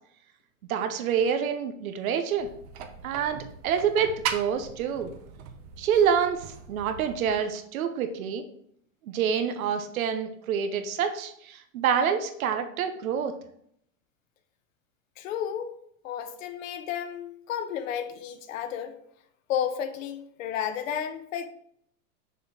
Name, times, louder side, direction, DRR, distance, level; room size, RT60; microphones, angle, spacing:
voice 1, 0.7-2.5 3.0-5.1 5.8-8.4 9.1-13.3, right 7 dB, 90° right, 7 dB, 1.0 m, -27 dB
sound 1, 2.4-7.4, right 8 dB, 25° right, 0.5 m, -39 dB
voice 2, 15.2-15.8 16.0-18.9 19.5-21.5, left 9 dB, 70° left, 9 dB, 1.0 m, -32 dB
6.7 x 4.5 x 4.9 m, 0.68 s
supercardioid pair, 165°, 41 cm